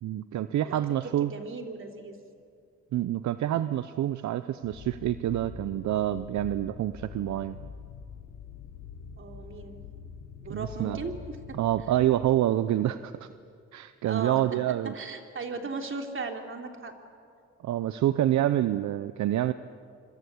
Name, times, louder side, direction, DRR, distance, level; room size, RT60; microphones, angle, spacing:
voice 1, 0.0-1.3 2.9-7.6 10.5-11.0 11.5-13.3 13.7-14.9 17.6-19.5, right 12 dB, 70° right, 13 dB, 0.8 m, -27 dB
voice 2, 0.6-2.2 9.2-9.8 10.4-11.6 14.0-14.4 14.9-16.9, right 4 dB, 40° right, 3 dB, 3.4 m, -37 dB
sound 1, 4.6-12.2, left 7 dB, 80° left, 4.1 m, -44 dB
25.5 x 25.5 x 8.6 m, 2.4 s
cardioid pair, 90°, 30 cm